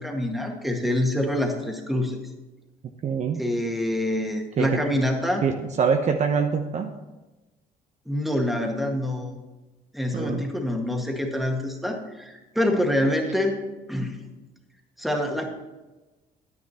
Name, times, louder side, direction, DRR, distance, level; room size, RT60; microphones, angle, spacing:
voice 1, 0.0-2.2 3.3-5.4 8.0-9.4 9.9-13.6 13.9-14.2 15.0-15.5, left 1 dB, ahead, 2 dB, 1.7 m, -26 dB
voice 2, 3.0-3.4 4.6-4.8 5.4-6.9 10.1-10.5, right 6 dB, 45° right, 5 dB, 0.8 m, -24 dB
10.5 x 9.7 x 4.2 m, 1.1 s
cardioid pair, 110°, 17 cm